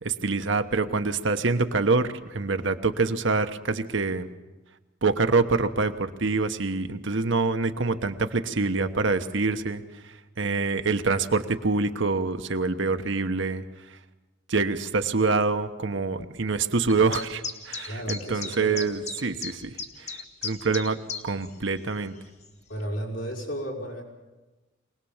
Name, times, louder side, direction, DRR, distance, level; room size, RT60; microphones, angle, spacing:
voice 1, 0.0-4.3 5.0-9.8 10.4-13.6 14.5-19.7 20.4-21.0 21.2-22.1, right 3 dB, 65° right, 8 dB, 1.1 m, -25 dB
sound 1, 16.9-21.5 21.7-21.8 22.4-22.5, left 5 dB, 35° left, 1.6 m, -35 dB
voice 2, 17.9-18.9 22.7-24.0, equal, 75° left, -1 dB, 5.5 m, -33 dB
24.5 x 19.0 x 7.2 m, 1.1 s
head